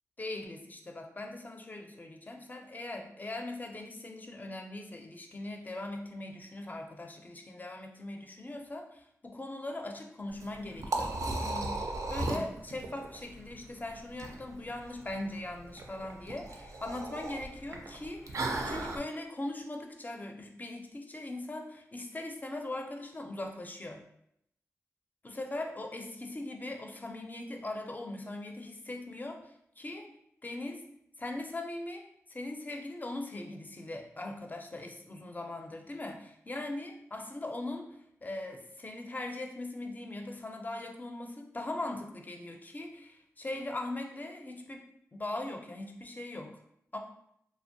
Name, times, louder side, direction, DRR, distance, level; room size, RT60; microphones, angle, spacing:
voice 1, 0.2-24.0 25.2-30.1 30.4-30.8 31.2-44.9 45.1-46.6 46.9-47.0, left 2 dB, 30° left, 3 dB, 0.4 m, -40 dB
Liquid, 10.3-19.0, right 2 dB, 65° right, 0.4 m, -37 dB
2.5 x 2.0 x 2.6 m, 0.73 s
cardioid pair, 55°, 6 cm